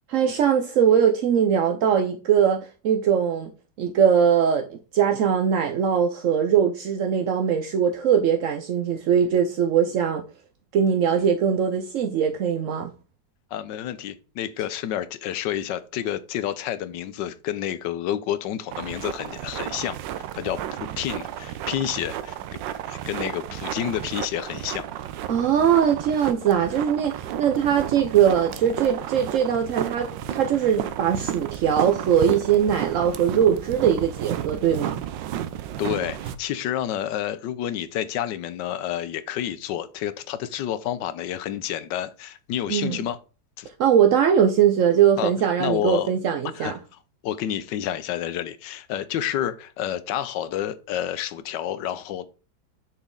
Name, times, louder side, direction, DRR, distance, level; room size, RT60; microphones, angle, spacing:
voice 1, 0.1-3.5 3.8-10.2 10.7-12.9 25.3-35.0 42.7-43.0 43.8-46.7, right 8 dB, 65° right, 0.8 m, -21 dB
voice 2, 13.5-22.4 22.9-24.8 35.8-43.2 43.6-43.7 45.2-45.3 45.6-46.1 46.5-52.3, left 11 dB, 80° left, 1.3 m, -29 dB
sound 1, 18.7-36.3, right 11 dB, 85° right, 1.4 m, -33 dB
7.0 x 6.0 x 3.8 m
omnidirectional pair, 1.9 m